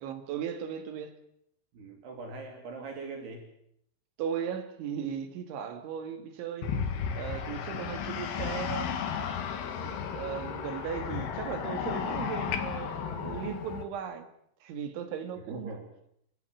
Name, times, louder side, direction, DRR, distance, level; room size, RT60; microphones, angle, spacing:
voice 1, 0.0-1.2 4.2-6.7 7.1-8.9 10.0-14.3 14.6-15.8, right 8 dB, 90° right, 8 dB, 4.5 m, -37 dB
voice 2, 1.7-3.4 7.7-7.9 9.8-10.0 15.4-15.8, right 3 dB, 65° right, 2 dB, 4.8 m, -42 dB
sound 1, 6.6-13.8, left 7 dB, 65° left, 3.8 m, -34 dB
29.0 x 14.5 x 8.5 m, 0.73 s
omnidirectional pair, 5.2 m